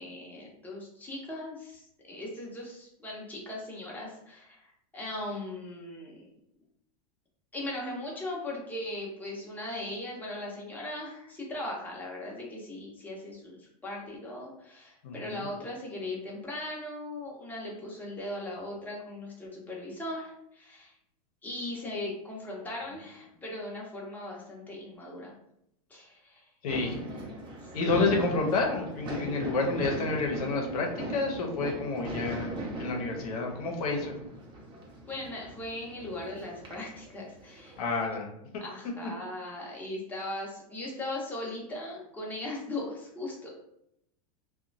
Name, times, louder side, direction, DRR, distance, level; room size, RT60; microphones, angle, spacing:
voice 1, 0.0-6.3 7.5-20.9 21.4-25.3 25.9-26.4 27.8-28.1 35.1-37.8 38.6-43.5, left 1 dB, 10° left, -4 dB, 0.8 m, -39 dB
voice 2, 15.0-15.5 26.6-27.0 27.7-34.1 37.8-38.3, left 3 dB, 75° left, 2 dB, 0.7 m, -29 dB
sound 1, 26.7-38.1, right 1 dB, 25° right, 0.7 m, -39 dB
2.8 x 2.2 x 2.6 m, 0.77 s
hypercardioid pair, 120°, 19 cm